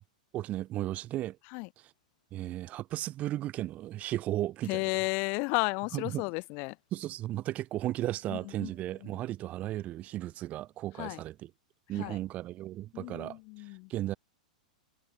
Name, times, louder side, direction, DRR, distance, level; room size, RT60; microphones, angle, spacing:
voice 1, 0.3-1.4 2.3-4.8 5.9-6.2 6.9-11.5 11.9-13.4 13.9-14.1, right 14 dB, 35° right, 2.2 m, -35 dB
voice 2, 4.7-6.8 8.3-8.7 9.0-9.2 11.0-11.2 12.0-12.2 12.9-13.9, left 32 dB, 45° left, 1.6 m, -33 dB
hypercardioid pair, 105°, 4 cm